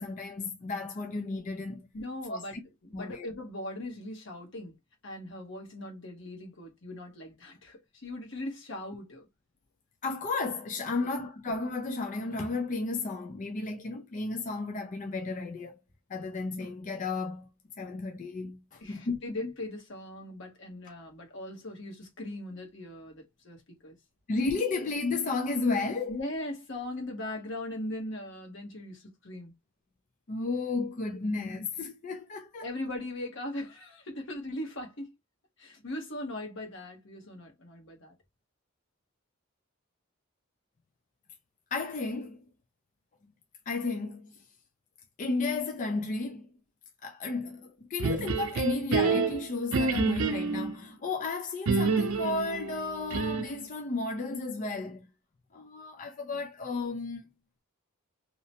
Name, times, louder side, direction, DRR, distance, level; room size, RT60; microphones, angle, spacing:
voice 1, 0.0-1.9 2.3-2.6 2.9-3.3 10.0-15.8 16.1-17.5 17.8-19.2 19.4-19.5 24.3-26.2 30.3-32.7 41.7-42.4 43.7-44.4 45.2-46.5 47.0-55.1 55.5-57.3, left 3 dB, 40° left, 0.4 m, -33 dB
voice 2, 1.9-2.6 2.8-4.7 5.0-9.3 11.0-11.1 18.8-23.9 26.1-29.5 32.6-35.1 35.6-38.1, left 1 dB, 60° left, 1.0 m, -39 dB
sound 1, 48.0-50.8 51.7-53.6, right 4 dB, 80° right, 0.5 m, -28 dB
2.8 x 2.1 x 2.8 m
head